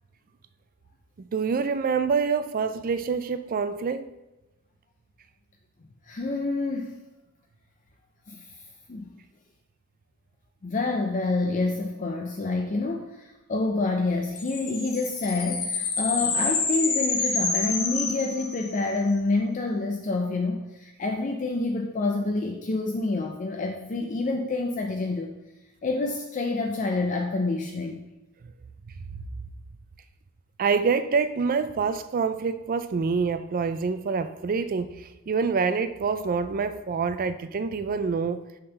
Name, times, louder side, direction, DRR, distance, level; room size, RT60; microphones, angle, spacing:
voice 1, 1.2-4.0 30.6-38.4, right 5 dB, 40° right, 0.4 m, -26 dB
voice 2, 6.0-6.9 8.3-8.5 8.9-9.1 10.6-25.3 25.8-28.0, left 3 dB, 35° left, 0.4 m, -27 dB
sound 1, 14.4-19.0, left 4 dB, 85° left, 1.2 m, -28 dB
6.6 x 3.8 x 5.6 m
head